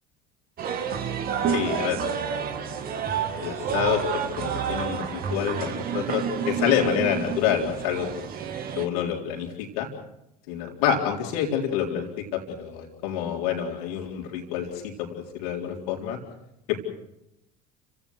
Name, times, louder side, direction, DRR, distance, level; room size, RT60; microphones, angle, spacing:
sound 1, 0.6-8.9, right 7 dB, 45° right, 2.4 m, -29 dB
voice 1, 1.5-2.0 3.4-8.1 8.7-9.9 10.5-16.2 16.7-16.9, left 9 dB, 70° left, 1 dB, 4.0 m, -27 dB
30.0 x 16.5 x 6.4 m, 0.84 s
figure-of-eight pair, 65°, 20 cm